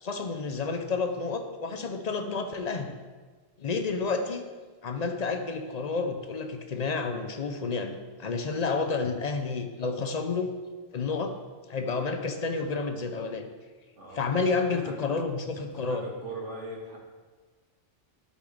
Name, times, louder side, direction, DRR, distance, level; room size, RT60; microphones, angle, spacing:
voice 1, 0.0-2.9 3.6-4.4 4.8-10.5 10.9-11.3 11.7-13.5 14.2-16.0, left 4 dB, 45° left, 6 dB, 0.6 m, -30 dB
voice 2, 13.9-15.0 15.7-17.0, right 2 dB, 80° right, -2 dB, 2.0 m, -41 dB
12.0 x 4.1 x 5.0 m, 1.4 s
omnidirectional pair, 1.2 m